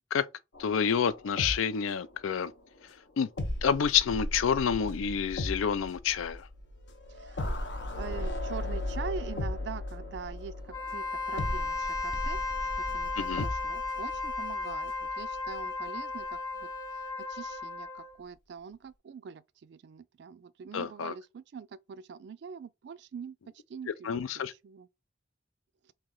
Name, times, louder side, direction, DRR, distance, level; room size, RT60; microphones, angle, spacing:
sound 1, 0.5-2.3 2.6-2.7 3.4-15.8 16.1-16.3, left 1 dB, 65° left, 0.7 m, -37 dB
voice 1, 0.6-2.5 3.2-3.3 3.6-6.5 13.2-13.5 20.7-21.1 24.0-24.5, left 7 dB, 85° left, 0.4 m, -28 dB
voice 2, 7.1-10.5 10.9-12.4 12.8-23.4 23.7-24.9, right 6 dB, 55° right, 0.3 m, -44 dB
Wind instrument woodwind instrument, 10.7-18.1, left 3 dB, 20° left, 0.4 m, -35 dB
3.1 x 2.8 x 3.7 m
head